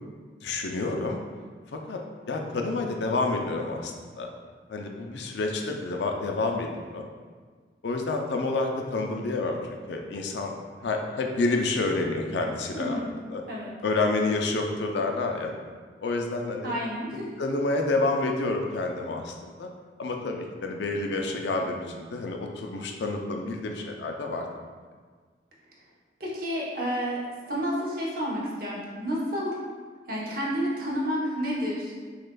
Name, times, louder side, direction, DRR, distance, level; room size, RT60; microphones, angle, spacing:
voice 1, 0.4-1.2 1.9-2.0 2.3-4.3 4.7-7.1 7.8-9.6 9.9-10.5 10.8-13.0 13.3-13.4 13.8-15.5 16.0-16.7 17.4-19.7 20.0-24.4, left 3 dB, 75° left, 2 dB, 0.5 m, -28 dB
voice 2, 12.7-13.1 13.5-13.7 16.6-17.3 26.2-27.2 27.5-29.5 30.1-31.9, equal, 55° right, -5 dB, 0.9 m, -30 dB
6.3 x 2.4 x 2.2 m, 1.5 s
head